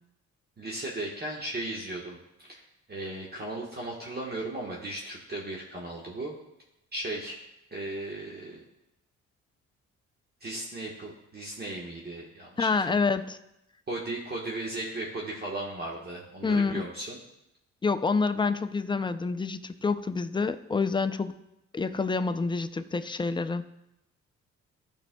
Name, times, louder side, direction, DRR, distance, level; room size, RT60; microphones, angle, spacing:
voice 1, 0.6-2.6 2.9-6.3 6.9-7.4 7.7-8.6 10.4-13.1 13.9-17.2, right 1 dB, 30° right, -3 dB, 1.3 m, -36 dB
voice 2, 12.6-13.4 16.4-16.8 17.8-21.4 21.7-23.6, left 4 dB, 15° left, 10 dB, 0.4 m, -27 dB
13.5 x 5.3 x 2.2 m, 0.88 s
cardioid pair, 90°, 30 cm